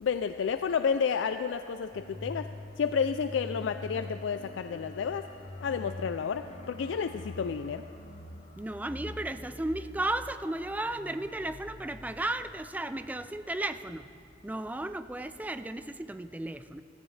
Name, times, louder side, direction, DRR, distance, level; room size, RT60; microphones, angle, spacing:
voice 1, 0.0-2.5 2.8-5.3 5.6-7.8, left 6 dB, 75° left, 9 dB, 0.3 m, -30 dB
sound 1, 1.9-14.3 14.6-14.8, left 1 dB, 35° left, 0.8 m, -45 dB
voice 2, 8.6-14.0 14.4-16.8, right 2 dB, 10° right, 11 dB, 0.3 m, -34 dB
16.5 x 14.5 x 3.3 m, 2.5 s
head